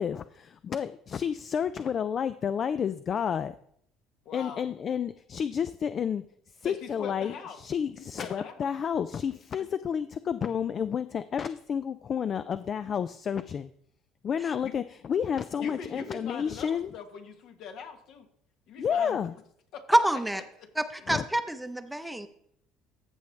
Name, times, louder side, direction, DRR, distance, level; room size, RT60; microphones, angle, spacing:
voice 1, 0.0-3.6 4.3-13.7 14.2-16.9 18.8-19.3 21.1-21.2, left 7 dB, 40° left, 13 dB, 0.3 m, -30 dB
voice 2, 4.2-4.6 6.6-7.6 8.0-8.5 9.6-9.7 14.6-14.7 15.6-18.3 18.7-19.2 19.7-19.9 20.3-20.7, left 6 dB, 65° left, 6 dB, 1.3 m, -41 dB
voice 3, 19.9-20.4 20.8-22.3, right 1 dB, 5° right, 9 dB, 0.7 m, -26 dB
14.5 x 5.6 x 3.2 m, 0.68 s
supercardioid pair, 95°, 0 cm